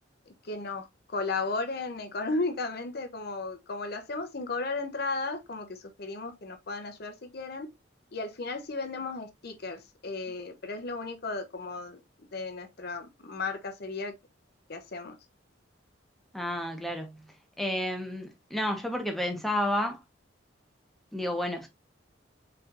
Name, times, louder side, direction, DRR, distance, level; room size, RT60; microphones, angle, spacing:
voice 1, 0.3-7.7 8.1-12.0 12.3-14.1 14.7-15.2, left 3 dB, 55° left, 0.8 m, -35 dB
voice 2, 16.3-20.0 21.1-21.7, left 1 dB, ahead, 1.0 m, -31 dB
4.3 x 4.2 x 2.5 m
head